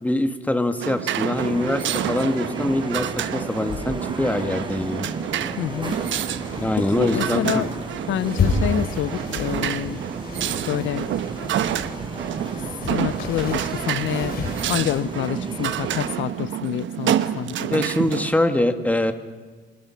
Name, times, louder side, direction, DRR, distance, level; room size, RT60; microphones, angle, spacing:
voice 1, 0.0-5.1 6.6-7.6 17.7-19.1, left 1 dB, 5° left, 8 dB, 1.8 m, -23 dB
sound 1, 0.8-18.3, right 11 dB, 75° right, 1.1 m, -28 dB
sound 2, 1.3-16.1, right 2 dB, 25° right, 4.5 m, -34 dB
sound 3, 3.7-15.0, left 4 dB, 50° left, 4.9 m, -32 dB
voice 2, 5.6-6.0 6.8-7.7 8.1-10.0 10.7-11.1 12.9-14.4 14.7-17.8, left 12 dB, 80° left, 16 dB, 0.8 m, -27 dB
27.5 x 26.5 x 5.9 m, 1.4 s
cardioid pair, 125°, 20 cm